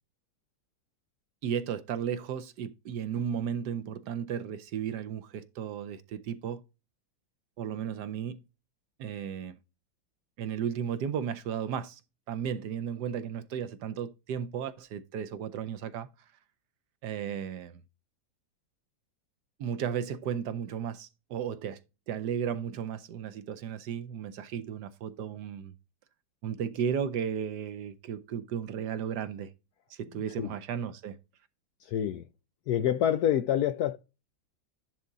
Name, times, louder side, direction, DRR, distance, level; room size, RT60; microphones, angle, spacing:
voice 1, 1.4-6.6 7.6-8.4 9.0-9.6 10.4-12.0 12.3-16.1 17.0-17.8 19.6-21.8 22.1-25.7 26.4-29.5 29.9-31.2, right 8 dB, 70° right, 1.2 m, -34 dB
voice 2, 31.8-32.2 32.7-34.0, left 10 dB, 75° left, 0.9 m, -27 dB
10.5 x 3.6 x 3.9 m
omnidirectional pair, 2.1 m